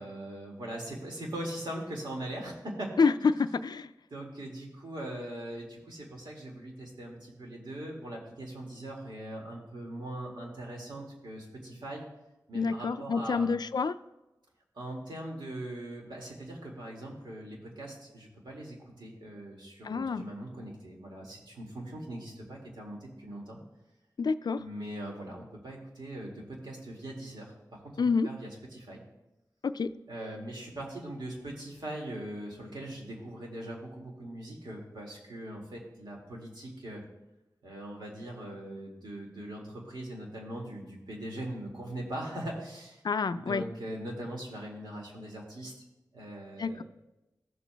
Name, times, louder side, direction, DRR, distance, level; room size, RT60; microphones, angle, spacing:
voice 1, 0.0-2.9 4.1-12.1 12.5-13.5 14.7-23.6 24.6-29.0 30.1-37.0 37.6-43.0 43.3-45.7 46.1-46.8, right 1 dB, 85° right, -2 dB, 2.0 m, -41 dB
voice 2, 3.0-3.9 12.5-14.0 19.8-20.2 24.2-24.6 28.0-28.3 29.6-29.9 43.0-43.6 46.6-46.8, left 5 dB, 70° left, 12 dB, 0.4 m, -28 dB
15.0 x 7.1 x 2.2 m, 0.96 s
cardioid pair, 45°, 7 cm